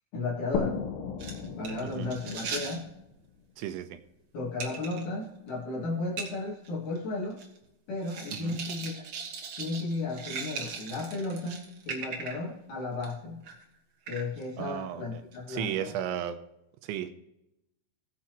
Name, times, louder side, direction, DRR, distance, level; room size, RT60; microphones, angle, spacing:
voice 1, 0.1-0.8 1.3-2.9 4.3-7.4 7.9-9.1 9.6-13.4 14.1-15.9, left 3 dB, 50° left, -3 dB, 3.1 m, -34 dB
sound 1, 0.5-4.1, left 5 dB, 75° left, 3.3 m, -37 dB
sound 2, 1.2-2.8 4.6-5.0 5.5-5.6 6.2-6.3 6.6-6.7 7.0-7.6 8.0-12.5 12.9-13.1 13.4-13.6 14.1-14.4 15.3-15.4, right 5 dB, 60° right, 1.6 m, -39 dB
voice 2, 1.8-2.2 3.6-4.0 8.3-8.6 14.6-15.2 15.5-16.4 16.8-17.2, right 11 dB, 85° right, 9 dB, 3.0 m, -34 dB
19.0 x 7.2 x 3.0 m, 0.86 s
omnidirectional pair, 5.4 m